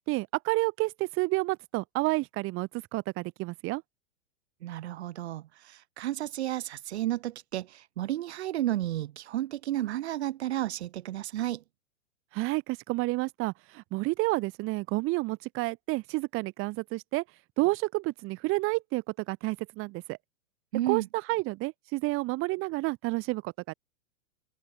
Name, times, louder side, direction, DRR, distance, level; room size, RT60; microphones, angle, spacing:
voice 1, 0.0-3.8 12.3-17.2 17.6-20.2 20.9-23.7, right 22 dB, 35° right, 1.9 m, -30 dB
voice 2, 4.6-11.6 20.7-21.1, right 14 dB, 60° right, 1.6 m, -32 dB
open air
hypercardioid pair, 110°, 38 cm